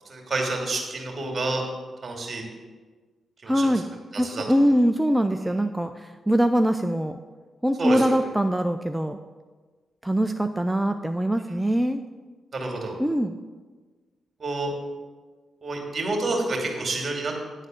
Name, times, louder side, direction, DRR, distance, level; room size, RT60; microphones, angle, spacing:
voice 1, 0.1-1.6 2.0-2.4 3.4-3.7 4.1-4.5 7.8-8.0 12.5-13.0 14.4-14.7 15.6-17.3, right 2 dB, 45° right, 1 dB, 2.5 m, -28 dB
voice 2, 3.5-3.9 4.2-7.2 7.6-9.2 10.0-12.0 13.0-13.3, equal, 10° right, 7 dB, 0.5 m, -23 dB
9.9 x 4.1 x 7.5 m, 1.4 s
supercardioid pair, 45°, 0 cm